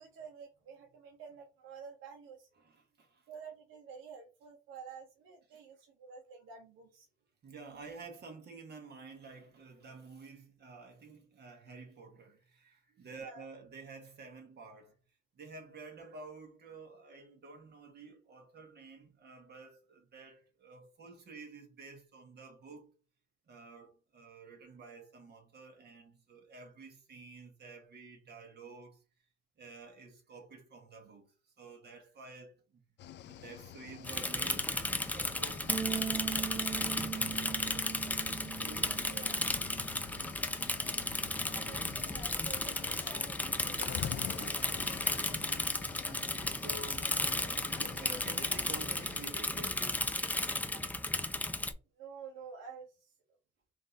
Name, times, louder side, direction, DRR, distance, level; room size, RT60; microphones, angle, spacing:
voice 1, 0.0-2.5 3.3-7.1 12.9-13.4 39.1-39.5 41.3-44.7 45.3-45.6 50.7-50.8 52.0-53.1, right 5 dB, 90° right, 0.8 m, -50 dB
voice 2, 2.6-3.3 5.5-5.6 7.4-15.0 15.3-22.9 23.5-29.0 29.6-32.8 33.3-39.3 44.4-45.3 45.7-50.1, right 3 dB, 55° right, 1.2 m, -51 dB
Cricket / Waves surf, 33.0-49.3, left 10 dB, 65° left, 0.4 m, -48 dB
Bicycle / Mechanisms, 34.0-51.7, left 2 dB, 10° left, 0.5 m, -34 dB
sound 1, 35.7-41.9, right 7 dB, 35° right, 1.2 m, -41 dB
3.8 x 2.6 x 3.9 m
cardioid pair, 90°, 20 cm